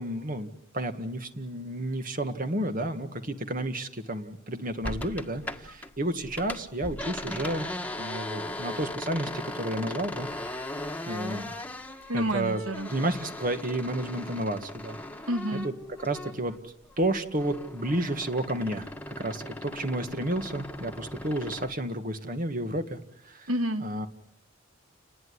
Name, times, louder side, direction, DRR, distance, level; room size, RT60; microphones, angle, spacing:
voice 1, 0.0-7.7 8.0-10.3 11.1-11.5 12.1-12.6 12.9-15.0 15.5-16.6 17.0-23.5 23.8-24.1, right 1 dB, 40° right, 8 dB, 1.8 m, -31 dB
sound 1, 4.8-5.9 6.2-16.6 16.9-21.8, left 1 dB, 10° left, 1.7 m, -38 dB
voice 2, 12.1-12.9 15.3-15.7 23.5-23.8, right 1 dB, 90° right, 9 dB, 2.4 m, -29 dB
30.0 x 20.0 x 9.7 m, 0.72 s
head